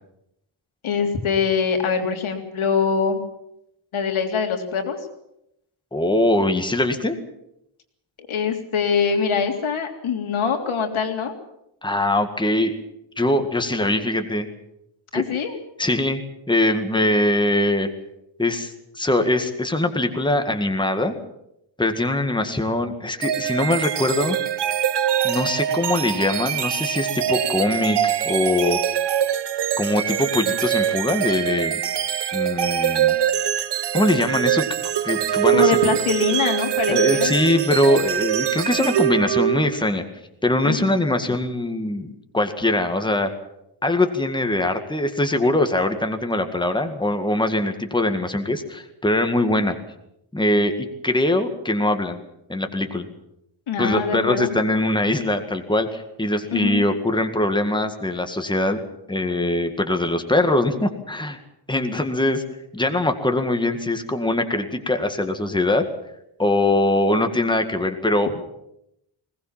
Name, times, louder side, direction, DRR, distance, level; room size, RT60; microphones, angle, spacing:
voice 1, 0.8-3.2 3.9-5.0 8.2-11.3 15.1-15.5 35.5-37.3 40.6-41.0 53.7-54.5 56.5-56.9, left 6 dB, 80° left, 4 dB, 3.5 m, -23 dB
voice 2, 5.9-7.2 11.8-12.7 13.2-14.5 15.1-15.2 15.8-17.9 18.4-21.1 21.8-24.4 25.2-28.8 29.8-31.8 32.3-33.2 33.9-34.6 35.0-35.8 36.9-40.0 40.4-43.3 43.8-49.8 50.3-52.2 52.5-53.1 53.8-58.8 59.1-61.4 61.7-62.4 62.7-65.8 66.4-68.3, left 1 dB, 10° left, 6 dB, 1.9 m, -22 dB
sound 1, 23.2-39.9, right 10 dB, 55° right, 1.0 m, -23 dB
21.0 x 18.5 x 7.5 m, 0.82 s
wide cardioid pair, 155°, 48 cm